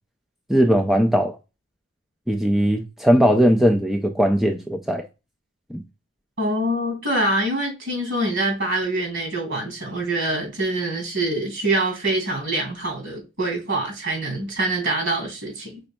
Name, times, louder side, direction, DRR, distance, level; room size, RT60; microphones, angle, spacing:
voice 1, 0.5-1.3 2.3-5.0 5.7-5.8, equal, ahead, 0.4 m, -19 dB
voice 2, 6.4-15.8, right 1 dB, 60° right, 2.8 m, -25 dB
5.2 x 4.0 x 2.2 m
head